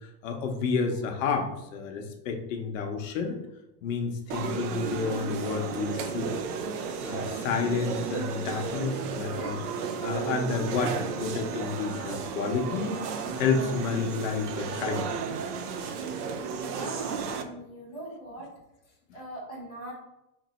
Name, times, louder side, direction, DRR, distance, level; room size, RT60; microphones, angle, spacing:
voice 1, 0.0-3.4 3.8-6.3 7.0-9.6 10.0-15.1, left 5 dB, 55° left, 3 dB, 0.7 m, -30 dB
sound 1, 4.3-17.4, right 6 dB, 70° right, 0.6 m, -33 dB
voice 2, 16.6-18.5 19.1-19.9, right 1 dB, 25° right, -8 dB, 0.3 m, -40 dB
2.9 x 2.6 x 4.0 m, 0.91 s
supercardioid pair, 170°, 49 cm